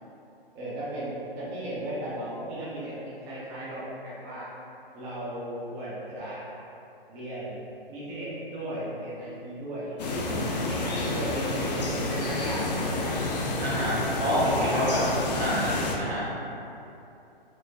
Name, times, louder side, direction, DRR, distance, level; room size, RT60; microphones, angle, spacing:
voice 1, 0.5-4.5 4.9-6.4 7.1-7.5 7.9-10.2 10.7-13.1 14.4-14.9 16.3-16.5, right 1 dB, 10° right, -9 dB, 0.4 m, -36 dB
Jungle Quiet, 10.0-15.9, left 2 dB, 45° left, 0.5 m, -29 dB
voice 2, 13.6-15.0 15.3-16.2, equal, 85° right, -8 dB, 1.4 m, -27 dB
4.3 x 2.1 x 2.8 m, 2.8 s
figure-of-eight pair, 130°, 30 cm